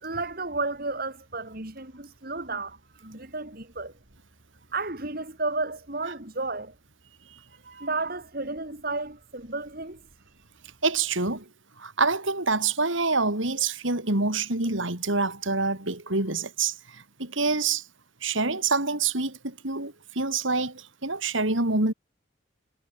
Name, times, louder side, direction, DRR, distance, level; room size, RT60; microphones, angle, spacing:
voice 1, 0.0-3.9 4.7-6.7 7.6-10.0, right 3 dB, 45° right, 3.0 m, -32 dB
voice 2, 10.8-11.4 11.8-17.8 18.2-21.9, right 3 dB, 70° right, 4.1 m, -26 dB
head